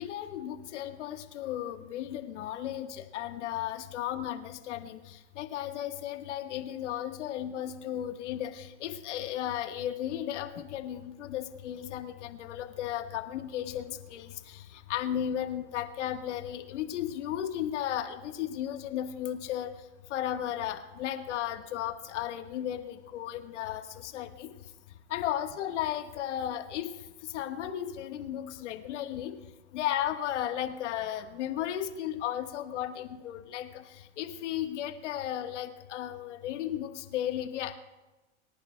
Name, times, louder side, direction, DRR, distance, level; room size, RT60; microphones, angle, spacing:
voice 1, 0.0-19.7 20.1-24.5 25.1-26.9 27.2-29.4 29.7-37.7, left 11 dB, 80° left, 6 dB, 1.5 m, -35 dB
28.0 x 11.0 x 2.3 m, 1.1 s
supercardioid pair, 115°, 35 cm